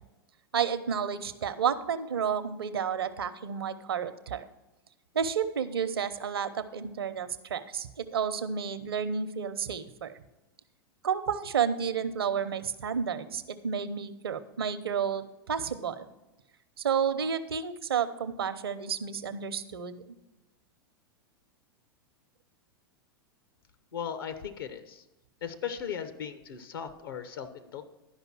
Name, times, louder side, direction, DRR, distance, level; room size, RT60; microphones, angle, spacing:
voice 1, 0.5-4.4 5.1-10.1 11.0-16.1 16.8-20.0, right 7 dB, 80° right, 12 dB, 0.7 m, -31 dB
voice 2, 23.9-25.0 25.4-27.8, left 8 dB, 70° left, 11 dB, 0.9 m, -37 dB
11.5 x 5.3 x 6.1 m, 1.0 s
hypercardioid pair, 95°, 13 cm